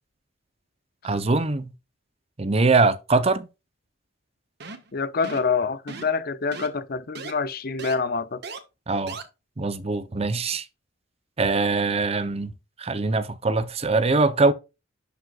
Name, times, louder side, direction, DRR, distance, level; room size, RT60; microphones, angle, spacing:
voice 1, 1.0-1.7 2.4-3.5 8.9-9.2 9.6-10.7 11.4-12.5 12.8-14.5, right 3 dB, 30° right, 0.7 m, -22 dB
sound 1, 4.6-4.9 5.2-5.5 5.9-6.2 6.5-6.7 7.1-7.3 7.8-7.9 8.4-8.6 9.1-9.2, right 4 dB, 55° right, 1.4 m, -37 dB
voice 2, 4.9-8.4, left 5 dB, 50° left, 0.6 m, -26 dB
11.5 x 5.2 x 2.4 m
head